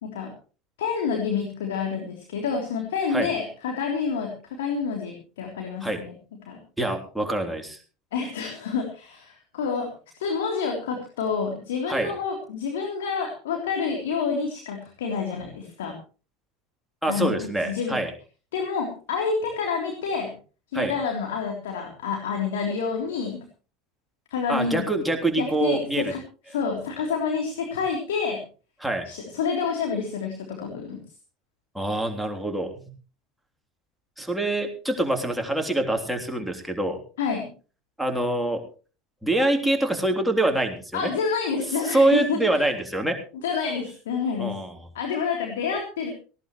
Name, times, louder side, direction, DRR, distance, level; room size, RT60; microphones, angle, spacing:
voice 1, 0.8-6.1 6.4-6.6 8.1-9.9 10.2-15.9 17.1-18.0 18.5-20.3 20.7-23.4 24.3-24.9 25.4-26.2 26.5-28.4 29.0-31.0 37.2-37.5 40.9-42.4 43.4-44.6 44.9-46.1, left 5 dB, 65° left, 1 dB, 3.4 m, -28 dB
voice 2, 6.8-7.8 11.9-12.1 17.0-18.1 20.7-20.9 24.5-26.1 28.8-29.1 31.7-32.7 34.2-37.0 38.0-38.6 39.2-41.1 41.8-43.2 44.4-44.7, right 1 dB, ahead, 2 dB, 3.4 m, -25 dB
18.0 x 17.0 x 3.1 m, 0.37 s
figure-of-eight pair, 75°, 0 cm